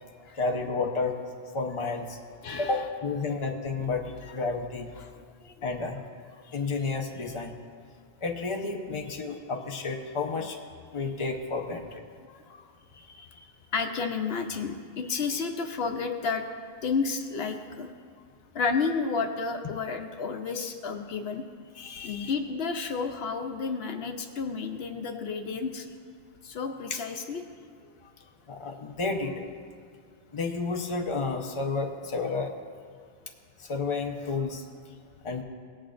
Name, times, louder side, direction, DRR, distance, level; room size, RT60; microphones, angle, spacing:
voice 1, 0.4-1.1 1.5-2.0 2.6-4.0 4.3-4.9 5.6-6.0 6.5-7.5 8.2-10.6 10.9-12.0 21.8-22.3 26.9-27.0 28.5-29.3 30.3-32.5 33.7-34.6 35.2-35.4, left 4 dB, 30° left, 2 dB, 0.8 m, -31 dB
voice 2, 2.4-2.9 4.2-4.4 5.0-5.5 6.4-6.6 8.9-9.0 12.3-12.6 13.7-16.5 16.8-17.9 18.5-21.4 22.0-25.9 26.4-27.4 28.0-28.1, left 5 dB, 75° left, 5 dB, 0.9 m, -31 dB
18.5 x 8.8 x 2.5 m, 2.2 s
omnidirectional pair, 1.1 m